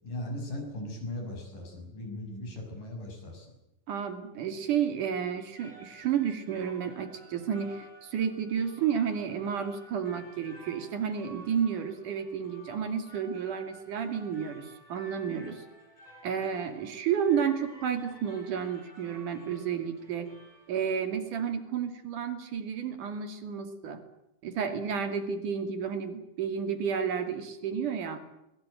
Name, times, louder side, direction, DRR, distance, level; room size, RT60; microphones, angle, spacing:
voice 1, 0.0-3.5, left 1 dB, 75° left, 4 dB, 8.0 m, -38 dB
voice 2, 3.9-15.7 16.2-20.3 20.7-24.0 24.4-28.2, right 7 dB, 70° right, 7 dB, 3.9 m, -31 dB
sound 1, 5.4-21.2, right 1 dB, 10° left, 5.4 m, -53 dB
22.5 x 21.5 x 9.2 m, 0.88 s
omnidirectional pair, 3.8 m